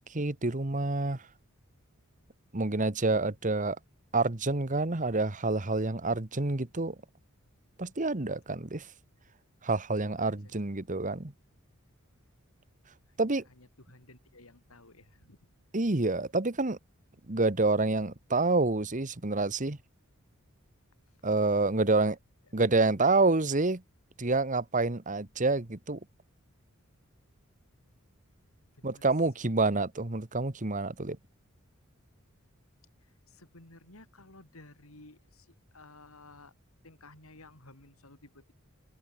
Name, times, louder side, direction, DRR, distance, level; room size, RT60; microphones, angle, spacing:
voice 1, 0.1-1.2 2.5-3.8 4.1-6.9 7.8-8.9 9.6-11.3 13.2-13.4 15.7-16.8 17.3-19.8 21.2-22.1 22.5-23.8 24.2-26.0 28.8-31.2, right 3 dB, 35° right, 1.4 m, -28 dB
voice 2, 10.0-10.5 13.1-15.4 21.1-21.2 22.0-22.1 28.7-29.1 33.0-36.5 36.8-38.5, left 2 dB, 85° left, 4.2 m, -55 dB
head